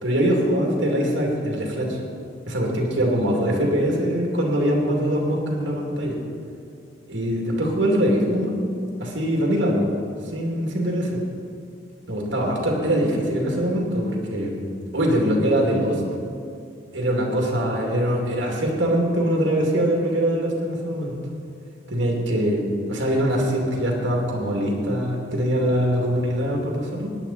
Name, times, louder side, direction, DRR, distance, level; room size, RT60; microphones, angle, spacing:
voice 1, 0.0-2.0 2.5-6.2 7.1-8.5 9.0-9.9 10.3-11.2 12.1-14.6 14.9-16.0 16.9-21.1 21.9-22.6 22.9-27.1, equal, 70° right, -1 dB, 2.6 m, -23 dB
17.5 x 10.0 x 4.2 m, 2.4 s
head